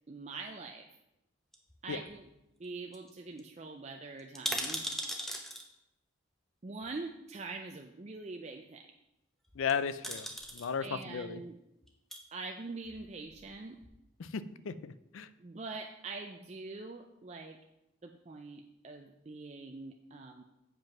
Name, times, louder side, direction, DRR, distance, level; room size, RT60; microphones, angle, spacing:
voice 1, 0.1-0.9 1.8-2.2 2.6-4.9 6.6-8.9 10.8-11.6 12.3-13.8 15.4-17.6 18.0-20.4, right 3 dB, 30° right, 3 dB, 0.4 m, -44 dB
sound 1, 1.5-2.3 2.6-2.7 2.9-3.1 3.4-3.5 4.2-5.6 6.8-6.9 9.5-9.7 10.0-10.7 11.8-12.2 12.9-13.6 13.8-13.9, equal, ahead, 0.7 m, -38 dB
voice 2, 9.6-10.3 10.5-11.4 14.2-15.3, left 6 dB, 80° left, 14 dB, 0.4 m, -35 dB
7.6 x 5.2 x 5.9 m, 0.89 s
head